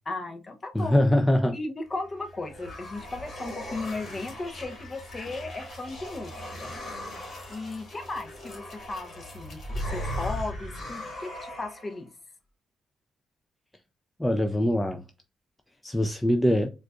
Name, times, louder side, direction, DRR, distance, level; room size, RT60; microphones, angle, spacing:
voice 1, 0.1-1.0 1.5-6.7 7.5-12.1, left 2 dB, 30° left, 0.7 m, -36 dB
voice 2, 0.7-1.5 14.2-15.0 15.8-16.7, left 1 dB, 10° left, 0.4 m, -23 dB
sound 1, 2.0-12.0, left 1 dB, 50° left, 1.5 m, -38 dB
4.3 x 2.4 x 2.4 m
cardioid pair, 90°, 0 cm